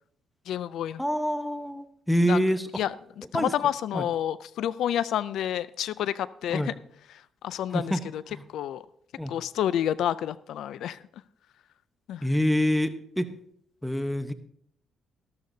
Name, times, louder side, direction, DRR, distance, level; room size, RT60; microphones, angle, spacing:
voice 1, 0.5-1.0 2.3-2.4 2.8-6.7 7.1-8.2 8.5-8.8 9.3-11.0 12.1-12.3, left 10 dB, 75° left, 18 dB, 0.3 m, -29 dB
voice 2, 1.0-2.7 3.3-3.5 3.9-4.0 6.5-6.7 7.7-8.0 8.3-8.4 9.2-9.3 12.2-13.3 13.8-14.3, equal, ahead, 10 dB, 0.9 m, -26 dB
14.0 x 13.0 x 2.7 m, 0.70 s
cardioid pair, 90°, 0 cm